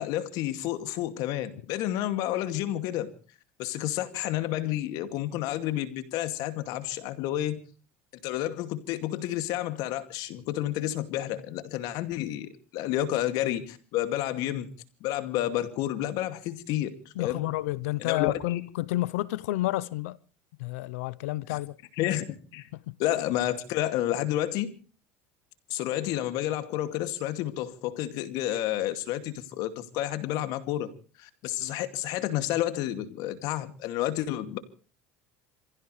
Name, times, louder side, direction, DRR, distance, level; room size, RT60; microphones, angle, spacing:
voice 1, 0.0-3.1 3.6-7.6 8.2-14.7 15.0-17.5 18.0-18.6 21.5-21.6 22.0-22.3 22.5-22.7 23.0-24.8 25.7-30.9 31.2-34.6, left 13 dB, 65° left, 2.4 m, -30 dB
voice 2, 17.2-20.2 20.6-21.8 22.9-23.0, left 17 dB, 85° left, 0.7 m, -30 dB
27.5 x 16.0 x 3.3 m
supercardioid pair, 100°, 7 cm